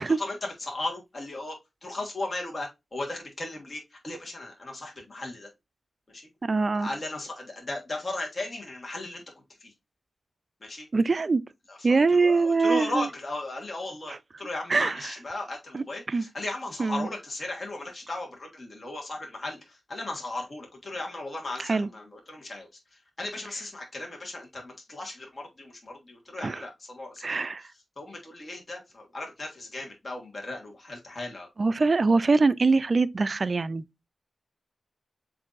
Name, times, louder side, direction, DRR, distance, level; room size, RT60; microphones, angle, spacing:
voice 1, 0.0-5.5 6.1-6.3 6.8-9.2 9.6-9.7 10.6-10.9 11.7-27.7 28.0-31.5 32.1-32.2, left 2 dB, 45° left, 1.5 m, -36 dB
voice 2, 6.4-6.9 10.9-11.4 11.8-13.1 14.1-14.2 14.7-15.0 15.7-16.2 16.8-17.1 21.7-21.9 26.4-26.6 27.2-27.7 31.6-33.8, right 3 dB, 50° right, 0.4 m, -23 dB
7.4 x 2.6 x 2.4 m
cardioid pair, 45°, 0 cm